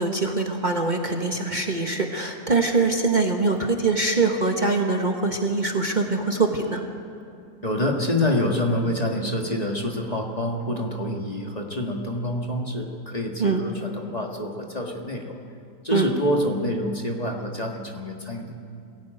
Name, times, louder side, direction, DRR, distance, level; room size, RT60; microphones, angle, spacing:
voice 1, 0.0-6.8 13.4-13.6 15.9-16.1, right 3 dB, 30° right, 2 dB, 1.3 m, -23 dB
voice 2, 7.6-15.4 15.8-18.5, left 1 dB, 25° left, 1 dB, 1.9 m, -27 dB
22.5 x 16.5 x 9.0 m, 2.5 s
omnidirectional pair, 1.6 m